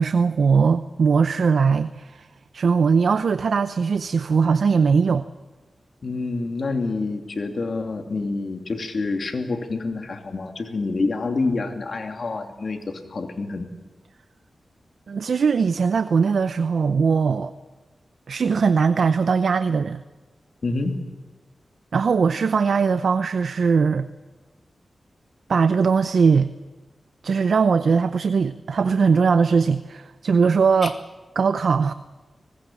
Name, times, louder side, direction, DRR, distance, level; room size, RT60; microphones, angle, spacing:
voice 1, 0.0-2.3 2.5-5.3 15.1-17.5 18.3-20.0 21.9-24.1 25.5-26.5 27.2-31.0 31.4-31.9, right 5 dB, 80° right, 12 dB, 0.6 m, -20 dB
voice 2, 6.0-13.7 20.6-21.0 30.8-30.9, left 3 dB, 65° left, 4 dB, 2.8 m, -27 dB
24.0 x 20.0 x 7.4 m, 1.3 s
cardioid pair, 50°, 0 cm